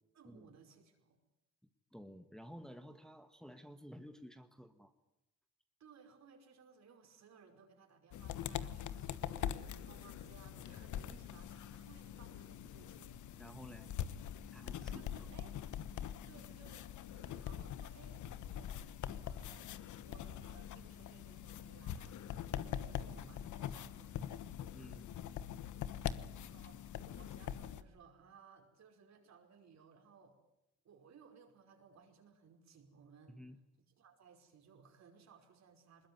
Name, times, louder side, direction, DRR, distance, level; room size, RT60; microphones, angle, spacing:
voice 1, 0.1-1.2 5.8-13.4 14.5-15.6 16.1-18.9 19.2-24.5 25.9-26.8 27.2-30.4 30.8-33.4 34.0-36.1, right 6 dB, 60° right, 4 dB, 5.3 m, -62 dB
voice 2, 1.9-4.9 13.4-13.9 14.5-14.9 15.3-15.4 24.7-25.1 33.3-33.6, equal, ahead, 7 dB, 1.6 m, -53 dB
sound 1, 8.1-27.8, left 10 dB, 75° left, 1.2 m, -43 dB
21.5 x 21.0 x 9.7 m, 0.91 s
cardioid pair, 90°, 30 cm